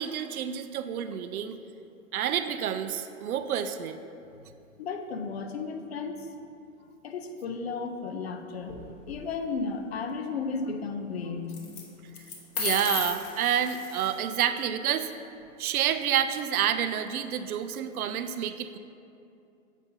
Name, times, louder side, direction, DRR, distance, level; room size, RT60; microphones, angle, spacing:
voice 1, 0.0-1.6 2.1-4.0 12.6-15.1 15.6-18.8, right 9 dB, 85° right, 11 dB, 0.5 m, -29 dB
voice 2, 4.8-6.3 7.0-11.6, left 4 dB, 50° left, 6 dB, 0.5 m, -34 dB
sound 1, 8.6-9.2 11.5-11.8 12.1-14.2, left 5 dB, 85° left, 1.2 m, -34 dB
7.2 x 5.2 x 2.7 m, 2.6 s
hypercardioid pair, 160°, 42 cm